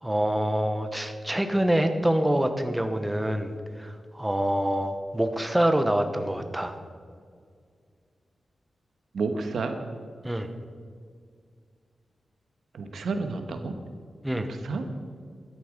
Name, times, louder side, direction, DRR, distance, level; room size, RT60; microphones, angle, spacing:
voice 1, 0.0-6.8 10.2-10.5 14.2-14.5, right 1 dB, 10° right, 7 dB, 0.8 m, -26 dB
voice 2, 9.1-9.8 12.7-13.8 14.5-14.9, right 4 dB, 85° right, 6 dB, 1.2 m, -30 dB
12.5 x 10.5 x 5.1 m, 2.1 s
wide cardioid pair, 130°, 0 cm